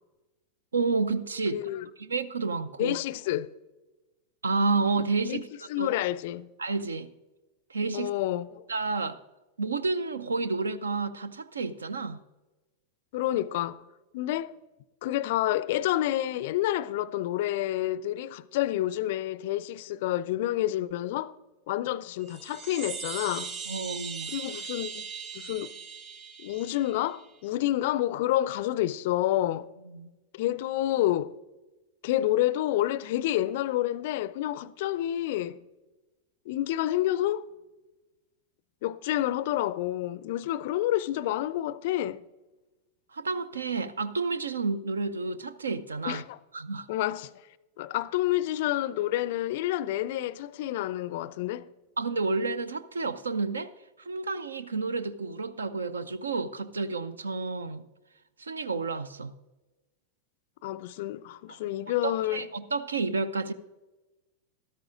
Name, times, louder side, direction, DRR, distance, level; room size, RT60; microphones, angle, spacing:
voice 1, 0.7-1.6 2.0-3.0 4.4-5.5 5.8-5.9 6.6-7.1 7.7-8.1 8.7-9.2 9.6-12.2 23.7-24.3 29.9-30.1 43.1-46.2 46.5-46.9 52.0-53.7 54.0-57.8 58.4-59.3 61.5-61.6 62.0-63.5, right 4 dB, 75° right, 0.5 m, -30 dB
voice 2, 1.5-1.9 2.8-3.5 5.3-5.4 5.7-6.5 7.9-8.6 13.1-13.8 14.1-14.5 15.0-21.4 21.7-23.5 24.3-25.0 25.3-25.8 26.4-29.7 30.3-31.3 32.0-35.6 36.5-37.4 38.8-42.2 46.1-46.4 46.9-47.3 47.8-51.7 60.6-62.5, left 14 dB, 50° left, 0.4 m, -29 dB
sound 1, 22.2-27.3, right 6 dB, 40° right, 2.2 m, -39 dB
13.5 x 13.0 x 2.5 m
figure-of-eight pair, 90°, 0 cm